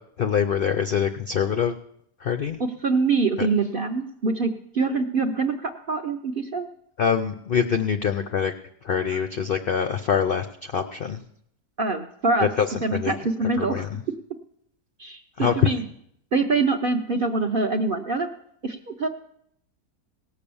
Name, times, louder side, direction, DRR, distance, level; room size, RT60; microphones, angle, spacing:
voice 1, 0.2-1.8 2.2-2.6 3.4-3.5 7.0-8.5 8.8-11.2 12.6-13.1 13.6-14.0 15.4-15.7, left 7 dB, 70° left, 8 dB, 0.5 m, -24 dB
voice 2, 2.8-6.7 9.1-9.2 11.8-12.5 12.8-13.9 15.0-15.8 16.3-18.3 18.6-19.1, right 3 dB, 50° right, 4 dB, 0.7 m, -24 dB
17.5 x 6.8 x 7.0 m, 0.71 s
omnidirectional pair, 1.7 m